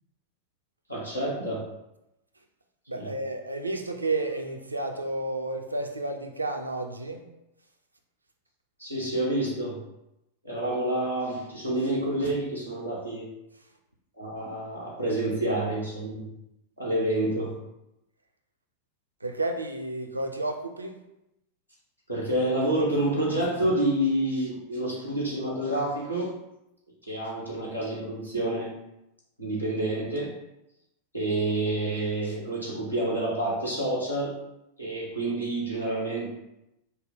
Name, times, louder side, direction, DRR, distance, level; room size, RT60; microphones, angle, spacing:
voice 1, 0.9-1.6 2.9-3.1 8.8-9.8 10.4-13.3 14.2-16.3 16.8-17.6 22.1-26.3 27.1-28.7 29.4-30.4 31.1-34.3 34.8-36.3, right 1 dB, 85° left, -5 dB, 1.4 m, -28 dB
voice 2, 2.9-7.3 19.2-21.0, right 2 dB, 80° right, 4 dB, 0.5 m, -31 dB
5.5 x 2.2 x 3.7 m, 0.89 s
figure-of-eight pair, 90°, 0 cm